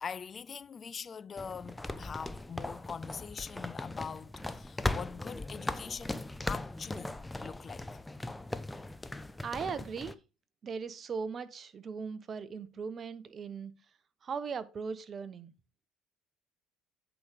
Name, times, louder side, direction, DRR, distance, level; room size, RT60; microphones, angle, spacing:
voice 1, 0.0-8.0, left 6 dB, 40° left, 0.3 m, -43 dB
sound 1, 1.4-10.1, left 2 dB, 10° left, 0.7 m, -39 dB
voice 2, 9.4-10.2 10.6-13.7 14.2-15.5, right 5 dB, 40° right, 0.8 m, -38 dB
8.3 x 4.9 x 5.0 m
hypercardioid pair, 65°, 0 cm